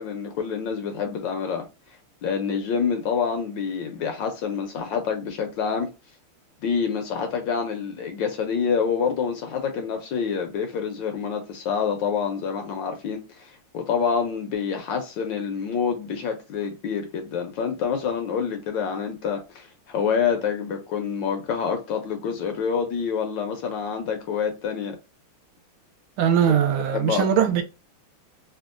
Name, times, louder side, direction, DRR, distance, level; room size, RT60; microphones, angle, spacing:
voice 1, 0.0-1.7 2.2-5.9 6.6-25.0 26.5-26.6 26.9-27.3, left 6 dB, 70° left, 1.2 m, -27 dB
voice 2, 26.2-27.6, right 8 dB, 75° right, 1.4 m, -20 dB
3.5 x 2.3 x 2.5 m
omnidirectional pair, 2.4 m